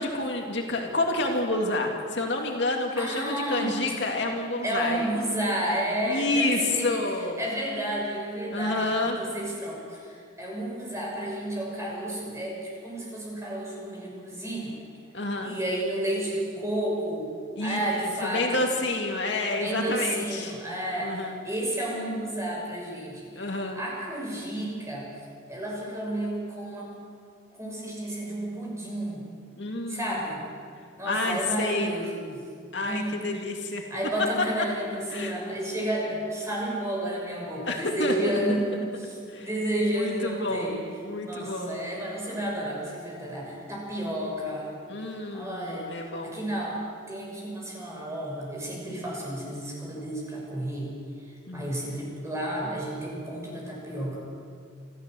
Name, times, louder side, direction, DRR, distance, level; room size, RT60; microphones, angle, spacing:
voice 1, 0.0-5.1 6.1-7.4 8.5-9.2 15.1-15.6 17.6-20.5 21.0-21.3 23.4-23.8 29.6-30.3 31.1-32.0 32.7-33.8 35.1-35.3 37.7-38.1 39.3-39.5 39.8-41.8 44.9-46.4 51.5-51.8, left 2 dB, 60° left, 2 dB, 2.2 m, -29 dB
voice 2, 3.0-3.7 4.6-7.0 7.4-14.8 15.4-17.3 17.6-18.6 19.5-25.1 25.5-27.0 27.6-29.2 29.9-30.4 31.0-32.4 32.8-33.2 33.9-40.8 41.2-44.8 45.3-45.9 46.2-46.8 47.1-51.0 51.5-54.2, right 1 dB, 15° right, -3 dB, 5.9 m, -31 dB
27.5 x 14.0 x 7.6 m, 2.2 s
head